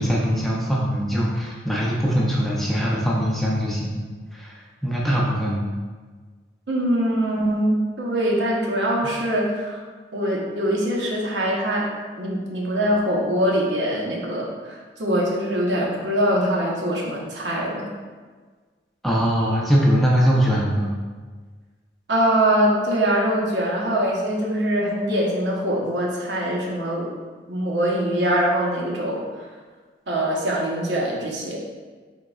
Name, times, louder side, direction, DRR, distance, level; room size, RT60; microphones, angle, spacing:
voice 1, 0.0-4.0 4.3-4.5 4.8-5.7 19.0-20.9, equal, ahead, -5 dB, 0.5 m, -21 dB
voice 2, 6.7-9.8 10.1-11.9 12.2-17.9 22.1-27.1 27.5-29.5 30.1-31.6, equal, 80° right, -3 dB, 0.8 m, -23 dB
3.9 x 3.7 x 2.3 m, 1.4 s
head